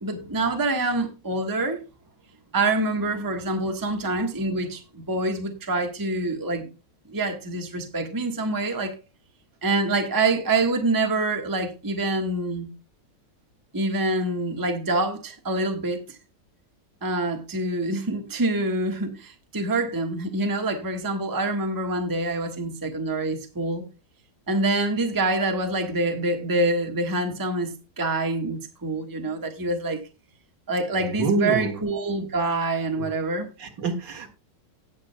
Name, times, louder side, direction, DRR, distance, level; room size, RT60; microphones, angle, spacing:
voice 1, 0.0-1.8 2.5-6.7 7.1-8.9 9.6-12.7 13.7-16.2 17.0-23.9 24.5-30.0 30.7-33.5, right 2 dB, 10° right, 1.2 m, -26 dB
voice 2, 31.0-31.8 33.0-33.1 33.6-34.3, right 3 dB, 70° right, 2.5 m, -26 dB
18.5 x 6.4 x 2.2 m
omnidirectional pair, 2.0 m